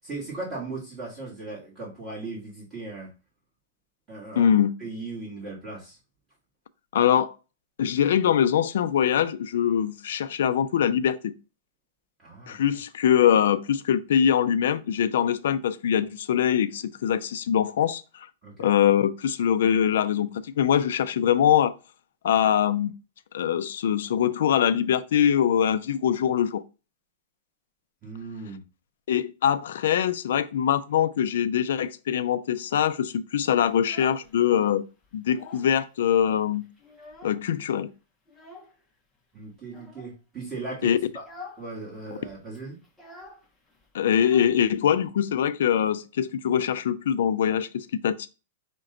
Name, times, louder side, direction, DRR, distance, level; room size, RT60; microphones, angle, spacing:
voice 1, 0.0-3.1 4.1-4.5 4.8-6.0 12.2-12.8 18.4-18.7 28.0-28.6 39.3-40.9 41.6-42.8, right 3 dB, 20° right, 1.6 m, -37 dB
voice 2, 4.3-4.7 6.9-7.3 7.8-11.3 12.5-18.0 18.6-21.8 22.2-22.9 23.3-26.6 29.1-34.8 35.1-36.6 37.2-37.9 40.8-41.0 43.9-48.3, left 9 dB, 75° left, 0.4 m, -23 dB
Child speech kid speaking, 33.6-34.7 35.0-35.8 36.1-36.2 36.5-37.6 38.3-38.8 39.6-40.1 40.6-40.8 41.1-41.7 41.9-42.0 42.3-45.1, left 2 dB, 5° left, 0.7 m, -47 dB
5.8 x 2.2 x 3.8 m
supercardioid pair, 155°, 0 cm